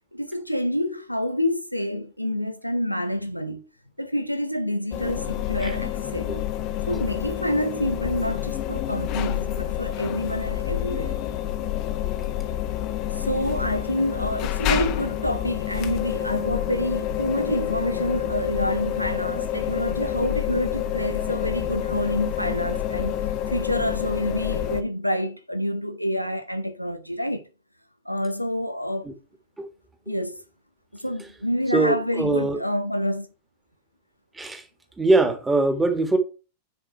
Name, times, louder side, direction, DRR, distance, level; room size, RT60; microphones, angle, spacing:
voice 1, 0.1-3.7 4.0-6.5 6.9-11.2 13.1-27.5 28.1-29.1 30.1-30.4 30.9-33.3, equal, 90° left, 0.6 m, -28 dB
sound 1, 4.9-24.8, left 11 dB, 40° left, 1.0 m, -28 dB
voice 2, 31.7-32.6 34.4-34.6 35.0-36.2, right 2 dB, 10° right, 1.7 m, -22 dB
9.7 x 4.8 x 4.5 m
figure-of-eight pair, 90°, 0 cm